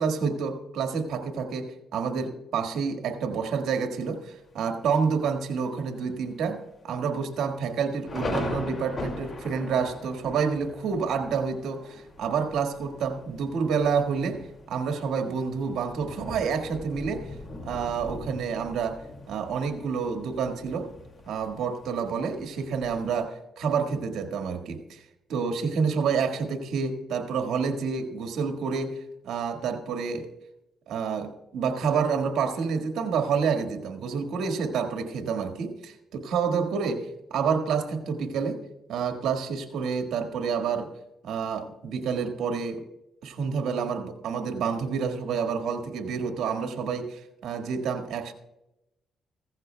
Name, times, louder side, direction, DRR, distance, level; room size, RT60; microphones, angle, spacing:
voice 1, 0.0-14.4 14.7-17.3 17.6-19.0 19.3-20.9 21.2-25.0 25.3-29.0 29.2-30.3 30.9-38.6 38.9-40.9 41.2-42.8 43.2-48.3, right 6 dB, 80° right, 6 dB, 1.6 m, -28 dB
Thunder, 3.9-4.5 5.0-5.1 5.4-5.8 6.2-6.3 7.0-23.2, left 2 dB, 35° left, 2.2 m, -40 dB
16.0 x 15.0 x 2.3 m, 0.89 s
cardioid pair, 90°, 0 cm